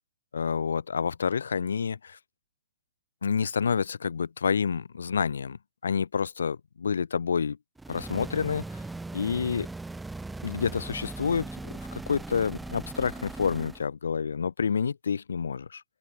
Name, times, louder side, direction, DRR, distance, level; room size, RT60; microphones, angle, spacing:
voice 1, 0.3-2.2 3.2-7.6 7.9-8.8 9.1-9.7 10.4-15.8, left 6 dB, 75° left, 2.3 m, -28 dB
sound 1, 7.8-13.9, right 2 dB, 5° right, 2.9 m, -39 dB
open air
hypercardioid pair, 135°, 0 cm